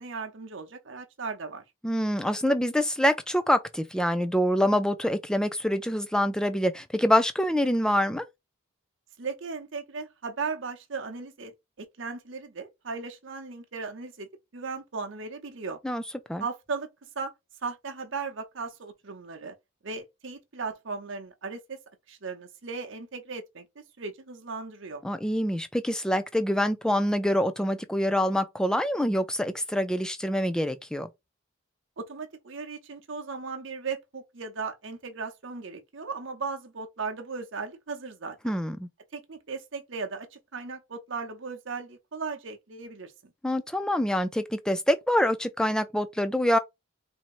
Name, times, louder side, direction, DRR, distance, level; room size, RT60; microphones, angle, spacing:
voice 1, 0.0-1.6 9.2-11.5 11.8-15.8 16.4-16.9 17.2-17.3 17.6-19.5 19.8-21.8 22.1-23.6 24.0-25.0 32.0-38.5 39.1-43.1, right 4 dB, 60° right, 0.7 m, -37 dB
voice 2, 1.8-8.3 15.8-16.0 16.3-16.4 25.0-31.1 38.4-38.9 43.4-46.6, equal, 5° left, 0.3 m, -25 dB
4.4 x 2.7 x 2.5 m
head